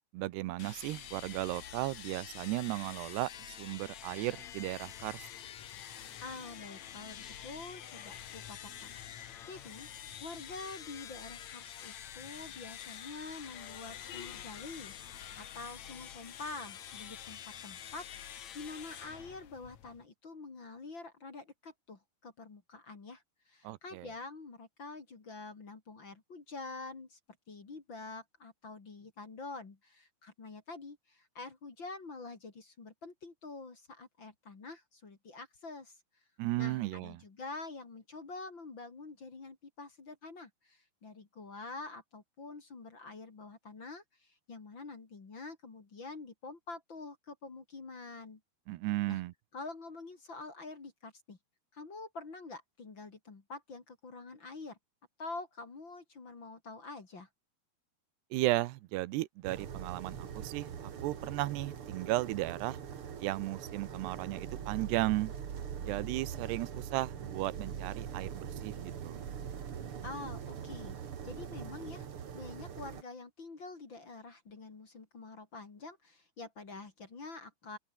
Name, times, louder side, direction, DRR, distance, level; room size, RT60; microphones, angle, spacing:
voice 1, 0.1-5.3 23.6-24.1 36.4-37.2 48.7-49.3 58.3-62.8 63.2-65.3 65.9-69.2, right 18 dB, 85° right, 2.9 m, -35 dB
sound 1, 0.6-20.1, left 10 dB, 55° left, 2.3 m, -47 dB
voice 2, 6.2-9.9 10.2-27.2 27.5-36.0 36.6-48.4 49.1-49.2 49.5-51.4 51.7-54.8 55.2-57.3 70.0-70.9 71.2-72.1 72.3-77.8, left 3 dB, 30° left, 3.0 m, -47 dB
sound 2, 59.4-73.0, right 8 dB, 45° right, 1.9 m, -42 dB
open air
omnidirectional pair, 4.8 m